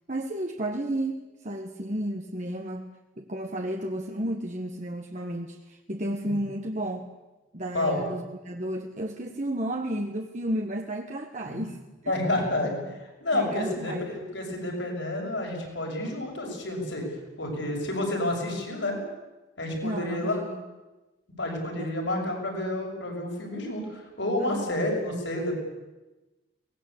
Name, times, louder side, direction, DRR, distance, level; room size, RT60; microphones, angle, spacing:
voice 1, 0.1-2.9 3.2-7.1 7.5-11.8 12.0-12.2 12.6-12.8 13.3-14.1 19.8-20.6 21.8-22.3 24.4-24.7, right 1 dB, 35° right, 3 dB, 1.3 m, -32 dB
voice 2, 12.1-17.0 17.4-19.0 19.6-20.4 21.4-25.6, left 1 dB, 70° left, 1 dB, 6.8 m, -30 dB
23.5 x 19.5 x 8.6 m, 1.1 s
head